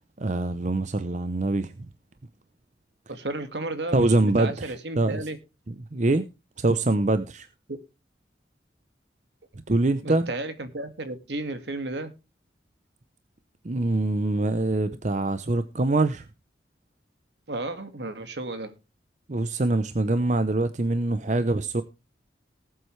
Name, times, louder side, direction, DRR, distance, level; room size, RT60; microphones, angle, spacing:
voice 1, 0.2-1.7 3.9-5.2 5.7-6.2 6.6-7.5 9.7-10.3 13.6-16.3 19.3-21.8, right 2 dB, 40° right, 0.7 m, -24 dB
voice 2, 3.1-5.4 7.7-7.8 10.0-12.1 17.5-18.7, right 2 dB, 70° right, 2.0 m, -33 dB
19.0 x 7.9 x 3.2 m
head